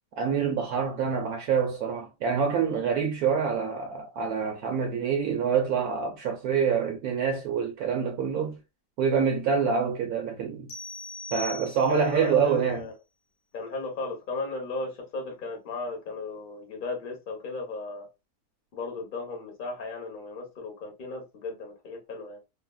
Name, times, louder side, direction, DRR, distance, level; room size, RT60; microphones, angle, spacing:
voice 1, 0.2-8.6 9.0-10.7 11.3-12.9, right 6 dB, 70° right, 1.0 m, -26 dB
sound 1, 10.7-12.2, left 2 dB, 65° left, 1.0 m, -40 dB
voice 2, 11.9-12.9 13.5-18.1 18.7-22.4, left 3 dB, 50° left, 0.6 m, -35 dB
3.1 x 2.4 x 2.2 m
omnidirectional pair, 1.9 m